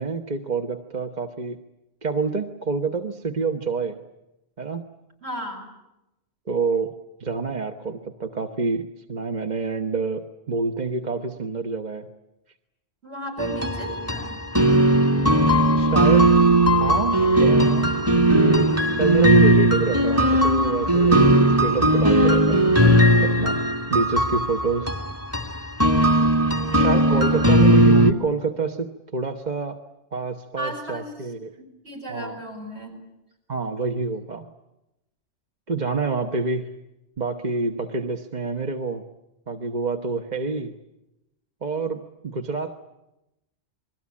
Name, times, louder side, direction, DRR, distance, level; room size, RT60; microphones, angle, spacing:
voice 1, 0.0-1.6 2.0-4.0 4.6-4.9 6.5-12.1 15.7-16.3 16.8-21.2 21.6-23.6 23.9-24.9 26.7-29.8 30.1-31.5 32.1-32.4 33.5-34.5 35.7-36.7 37.2-39.0 39.5-40.7 41.6-42.8, right 4 dB, 35° right, 6 dB, 1.3 m, -27 dB
voice 2, 5.2-5.7 13.0-14.4 27.1-27.7 30.6-31.1 31.6-32.9, equal, 55° right, 4 dB, 7.8 m, -35 dB
sound 1, 13.4-28.1, right 1 dB, 10° right, 1.8 m, -18 dB
29.0 x 22.0 x 8.6 m, 0.92 s
omnidirectional pair, 1.3 m